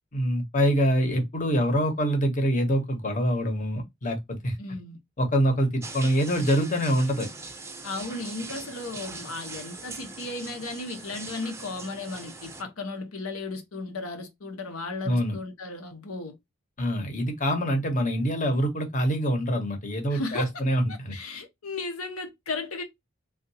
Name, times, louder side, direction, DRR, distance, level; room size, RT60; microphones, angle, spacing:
voice 1, 0.1-4.6 5.2-7.3 15.0-15.4 16.8-21.1, equal, 35° left, 1.0 m, -25 dB
voice 2, 4.6-5.0 7.8-16.4 20.1-20.6 20.9-22.8, left 3 dB, 85° left, 1.0 m, -35 dB
sound 1, 5.8-12.6, right 3 dB, 15° right, 0.5 m, -41 dB
3.5 x 2.5 x 2.7 m
head